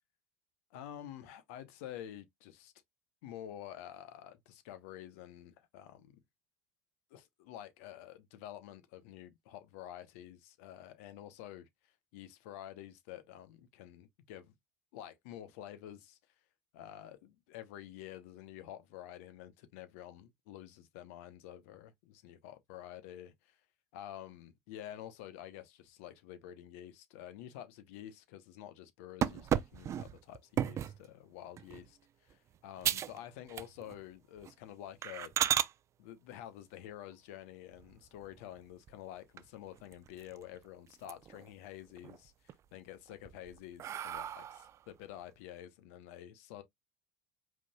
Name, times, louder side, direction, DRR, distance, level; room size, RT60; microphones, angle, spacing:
voice 1, 0.7-2.7 3.2-6.2 7.1-14.5 14.9-16.2 16.7-23.3 23.9-35.3 36.0-46.6, left 11 dB, 75° left, 0.9 m, -49 dB
sound 1, 29.2-31.0 31.6-31.9 32.3-32.4 32.8-33.2 33.5-34.0 34.4-34.5 35.0-35.7 37.7-38.4 38.9-39.0 39.4-39.5 39.8-40.6 40.9-41.5 41.9-42.5 43.1-44.8, right 10 dB, 40° right, 0.5 m, -35 dB
5.0 x 3.8 x 2.2 m
hypercardioid pair, 85°, 8 cm